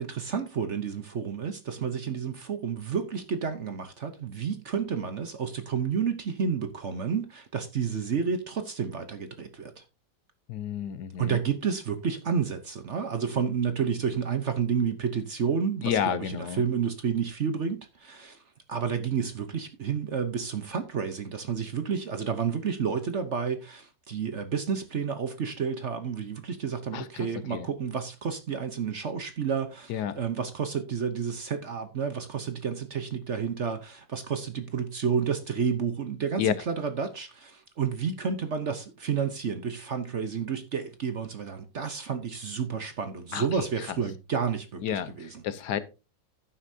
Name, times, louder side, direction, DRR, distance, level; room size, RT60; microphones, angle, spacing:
voice 1, 0.0-9.8 11.2-18.4 18.7-45.4, right 6 dB, 50° right, 1.0 m, -30 dB
voice 2, 10.5-11.4 15.8-16.6 26.9-27.7 29.9-30.2 36.4-36.5 43.3-43.6 44.8-45.8, left 9 dB, 70° left, 1.3 m, -30 dB
11.0 x 9.4 x 2.7 m
omnidirectional pair, 1.9 m